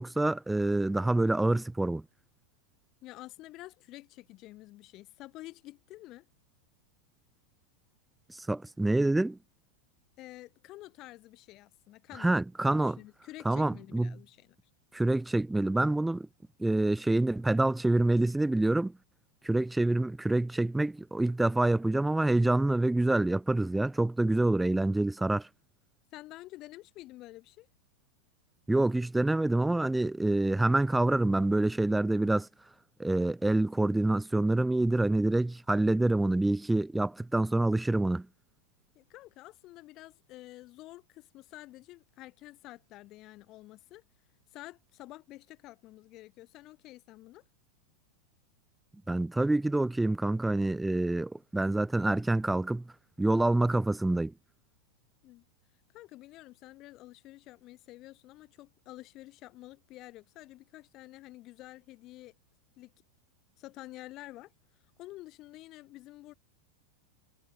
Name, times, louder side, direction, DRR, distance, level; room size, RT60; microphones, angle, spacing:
voice 1, 0.0-2.0 8.4-9.4 12.2-13.0 13.4-14.1 14.9-16.3 16.6-18.9 19.4-25.5 28.7-32.5 33.0-38.3 49.1-52.8 53.2-54.3, right 2 dB, 5° right, 1.1 m, -27 dB
voice 2, 3.0-6.3 10.2-12.4 12.7-14.6 26.1-27.7 34.8-35.0 38.9-44.0 44.5-47.4 55.2-55.4 55.9-62.3 62.8-62.9 63.6-64.5 65.0-66.3, left 17 dB, 35° left, 6.7 m, -49 dB
figure-of-eight pair, 90°, 0 cm